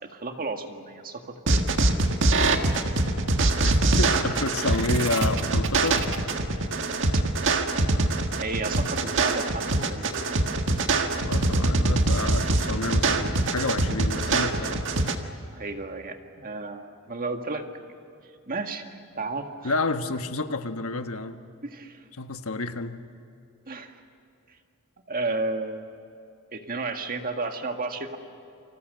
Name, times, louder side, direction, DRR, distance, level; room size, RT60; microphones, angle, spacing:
voice 1, 0.0-1.6 7.1-7.2 8.4-10.3 15.5-17.7 18.5-19.7 21.6-22.0 23.7-24.0 25.1-25.9 26.5-28.2, right 3 dB, 40° right, 5 dB, 1.9 m, -33 dB
sound 1, 1.5-15.2, right 2 dB, 60° right, 1.6 m, -23 dB
voice 2, 4.0-6.4 11.2-14.9 19.6-21.4 22.2-23.0, left 2 dB, 70° left, 8 dB, 1.3 m, -30 dB
29.5 x 26.0 x 6.8 m, 2.6 s
head